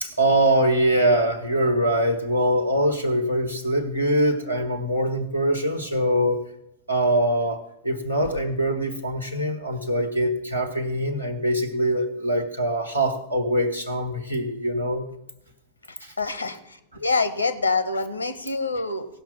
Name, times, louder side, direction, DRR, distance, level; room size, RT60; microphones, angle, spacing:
voice 1, 0.0-6.4 6.9-15.1 16.0-16.1, right 1 dB, 90° right, 3 dB, 1.3 m, -23 dB
voice 2, 16.2-16.6 17.0-19.1, left 3 dB, 80° left, 13 dB, 0.9 m, -25 dB
16.5 x 5.9 x 7.2 m, 0.83 s
figure-of-eight pair, 90°, 0 cm